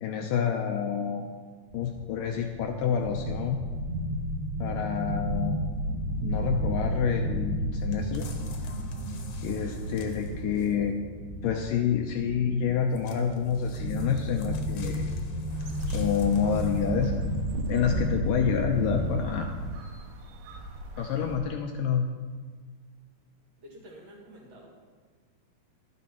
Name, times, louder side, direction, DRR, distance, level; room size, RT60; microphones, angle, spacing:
voice 1, 0.0-1.3 1.7-3.6 4.6-5.6 6.2-8.3 9.4-11.0 11.4-15.0 15.9-17.1 17.7-19.5 21.0-22.1, left 7 dB, 75° left, 3 dB, 2.1 m, -28 dB
sound 1, 1.7-19.8, right 1 dB, 65° right, 2.1 m, -33 dB
sound 2, 7.9-10.9 12.9-17.1 17.7-17.8, left 4 dB, 60° left, 2.2 m, -48 dB
sound 3, 15.5-21.4, right 1 dB, 80° right, 3.0 m, -37 dB
voice 2, 23.6-24.7, equal, 50° right, -2 dB, 3.0 m, -49 dB
12.0 x 9.2 x 5.7 m, 1.5 s
omnidirectional pair, 4.4 m